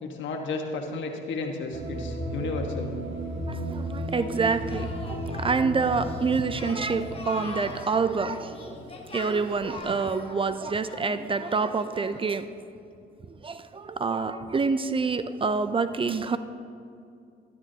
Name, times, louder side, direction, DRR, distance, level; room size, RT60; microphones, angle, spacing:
voice 1, 0.0-2.9, left 3 dB, 70° left, 3 dB, 1.3 m, -33 dB
sound 1, 1.7-9.9, right 1 dB, 65° right, 2.3 m, -35 dB
voice 2, 3.5-8.7 9.1-12.5 13.4-16.4, right 4 dB, 25° right, 11 dB, 0.4 m, -27 dB
Singing, 4.1-12.4, left 3 dB, 30° left, 1.2 m, -43 dB
12.0 x 12.0 x 2.8 m, 2.4 s
cardioid pair, 90°, 20 cm